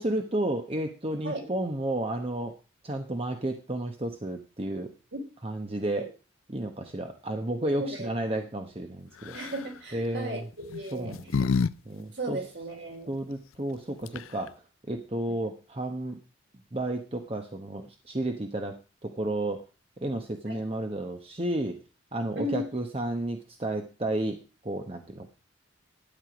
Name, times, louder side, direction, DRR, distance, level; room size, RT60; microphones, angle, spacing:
voice 1, 0.0-2.5 2.8-4.9 5.4-6.1 6.5-9.4 9.9-10.5 10.9-11.5 11.9-12.4 13.1-14.5 14.9-16.2 16.7-18.8 19.0-19.6 20.0-21.8 22.1-24.4 24.6-25.3, right 1 dB, 30° right, 4 dB, 1.0 m, -32 dB
voice 2, 7.8-8.1 9.3-11.2 12.1-13.1 20.5-20.6 22.4-22.6, right 1 dB, 60° right, 2 dB, 3.6 m, -35 dB
sound 1, 9.2-9.7 10.6-11.7 12.0-12.1 13.8-13.9 14.0-14.5, left 5 dB, 90° left, 0.5 m, -28 dB
12.5 x 9.6 x 5.0 m, 0.33 s
head